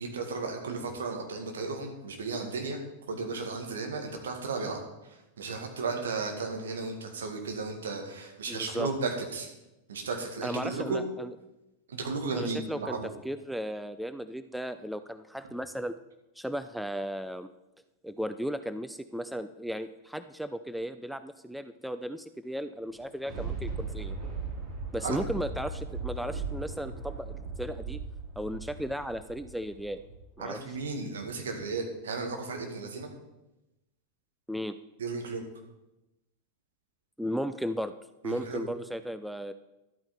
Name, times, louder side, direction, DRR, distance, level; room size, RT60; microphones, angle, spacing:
voice 1, 0.0-2.8 3.1-4.8 5.1-9.5 9.9-11.0 11.9-13.1 25.0-25.2 30.4-33.1 35.0-35.4 38.2-38.6, right 4 dB, 65° right, 3 dB, 2.0 m, -34 dB
voice 2, 8.5-8.9 10.4-11.3 12.3-13.0 13.2-16.0 16.4-17.5 18.0-24.2 24.9-28.0 28.4-30.0 30.4-30.6 34.5-34.8 37.2-37.9 38.2-39.5, equal, ahead, 11 dB, 0.4 m, -35 dB
Thunder, 22.8-30.4 30.9-31.0, right 4 dB, 25° right, 2.9 m, -38 dB
12.0 x 8.7 x 4.3 m, 0.96 s
figure-of-eight pair, 90°, 0 cm